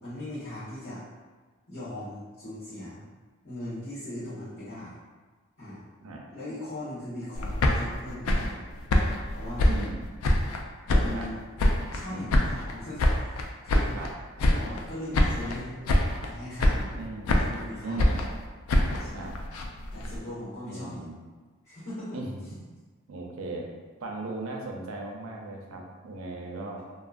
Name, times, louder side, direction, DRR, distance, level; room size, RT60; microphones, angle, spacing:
voice 1, 0.0-1.0 1.7-3.0 3.4-4.9 5.6-5.8 6.3-8.6 9.3-9.9 11.0-11.7 11.9-14.0 14.4-15.7 16.3-17.0 17.4-18.0 19.0-19.3 19.9-21.0 21.6-22.2, left 1 dB, 50° left, -17 dB, 1.2 m, -39 dB
sound 1, 7.3-10.6 10.9-12.0 12.3-14.1 14.4-14.9 15.1-15.6 15.9-16.3 16.6-17.6 18.0-20.2, left 1 dB, 85° left, 0.3 m, -25 dB
voice 2, 9.6-10.0 10.9-11.3 12.1-12.5 13.9-14.1 16.9-17.4 17.8-18.2 19.1-19.3 20.6-21.2 22.1-22.4 23.1-23.7 24.0-26.8, right 2 dB, 80° right, 0 dB, 0.5 m, -37 dB
2.9 x 2.3 x 2.5 m, 1.4 s
head